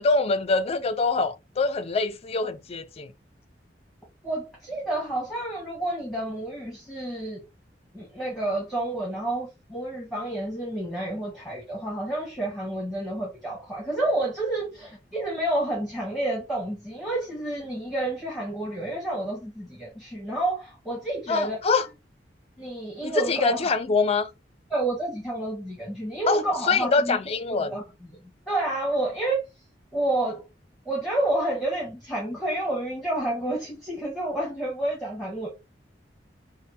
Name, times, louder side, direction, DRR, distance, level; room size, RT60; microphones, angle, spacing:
voice 1, 0.0-3.1 21.3-21.8 23.0-24.3 26.3-26.4 26.7-27.7, left 4 dB, 35° left, 0.4 m, -24 dB
voice 2, 4.2-7.4 7.9-21.6 22.6-23.7 24.7-27.2 27.5-28.2 28.5-29.4 29.9-30.4 30.8-35.5, right 1 dB, ahead, 1.3 m, -29 dB
3.3 x 2.0 x 4.1 m
head